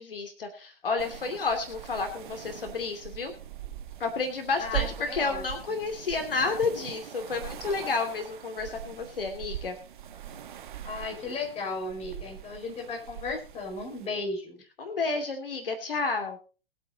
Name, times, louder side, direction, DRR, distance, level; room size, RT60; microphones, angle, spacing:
voice 1, 0.0-3.3 4.0-9.8 14.8-16.4, left 4 dB, 65° left, 6 dB, 2.7 m, -31 dB
sound 1, 1.0-14.1, right 11 dB, 55° right, 1.3 m, -41 dB
voice 2, 4.6-5.4 10.8-14.6, left 3 dB, 20° left, 1 dB, 5.5 m, -35 dB
22.0 x 8.0 x 4.0 m, 0.36 s
figure-of-eight pair, 110°, 29 cm